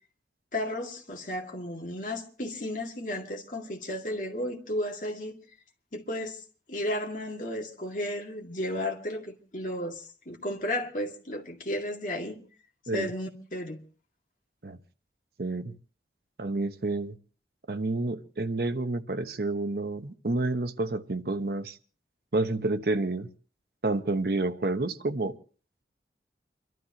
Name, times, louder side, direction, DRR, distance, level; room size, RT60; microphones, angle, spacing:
voice 1, 0.5-5.4 5.9-6.4 6.7-12.4 12.9-13.8, left 1 dB, 45° left, 2.1 m, -33 dB
voice 2, 15.4-15.7 16.4-17.1 17.7-21.8 22.3-23.3 23.8-25.3, right 2 dB, 60° right, 0.9 m, -29 dB
29.5 x 12.5 x 2.9 m
head